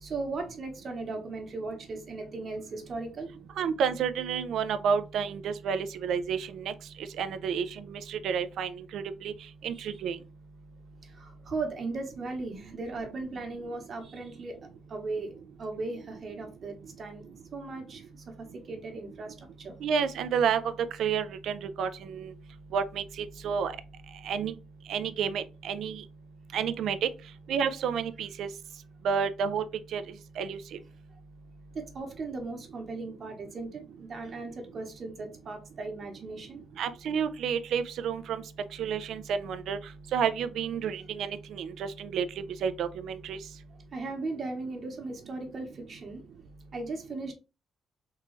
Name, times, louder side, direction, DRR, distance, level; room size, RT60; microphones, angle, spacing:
voice 1, 0.0-3.3 9.7-9.9 11.2-14.6 14.9-15.3 15.6-17.2 17.5-18.0 18.7-19.8 31.7-36.6 43.9-46.2 46.7-47.3, right 3 dB, 50° right, 1.1 m, -37 dB
voice 2, 3.6-6.7 7.2-9.3 9.6-10.2 19.8-20.6 21.0-22.3 22.7-23.0 23.4-23.7 24.3-24.5 24.9-26.0 26.5-27.1 27.5-28.5 29.0-29.6 29.9-30.0 30.4-30.6 36.8-38.4 38.8-39.8 40.1-42.2 42.6-43.4, right 7 dB, 75° right, 0.4 m, -30 dB
3.6 x 2.4 x 3.0 m
cardioid pair, 90°, 0 cm